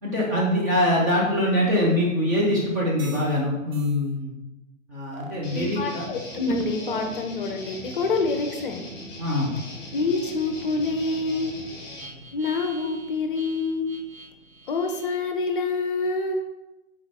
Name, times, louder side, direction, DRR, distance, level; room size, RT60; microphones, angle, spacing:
voice 1, 0.0-4.3 4.9-6.1 9.2-9.5, left 1 dB, 15° right, -6 dB, 0.4 m, -23 dB
sound 1, 3.0-3.4 3.7-4.0 5.1-5.4 6.4-7.3 7.8-15.3, right 3 dB, 90° right, 0.8 m, -40 dB
Guitar, 5.4-12.1, left 1 dB, 15° left, 1.0 m, -40 dB
voice 2, 5.5-8.8 9.9-11.6 12.3-13.9 14.7-16.4, left 3 dB, 40° left, 5 dB, 0.6 m, -27 dB
4.1 x 4.0 x 3.2 m, 0.99 s
figure-of-eight pair, 120°, 40 cm